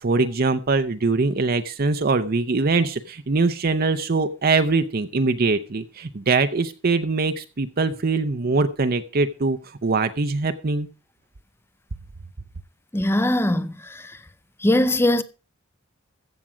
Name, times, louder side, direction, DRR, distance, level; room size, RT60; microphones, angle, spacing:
voice 1, 0.0-10.9, right 3 dB, 45° right, 0.6 m, -22 dB
voice 2, 12.9-13.7 14.6-15.2, left 1 dB, 10° left, 0.6 m, -20 dB
15.0 x 7.5 x 5.0 m
head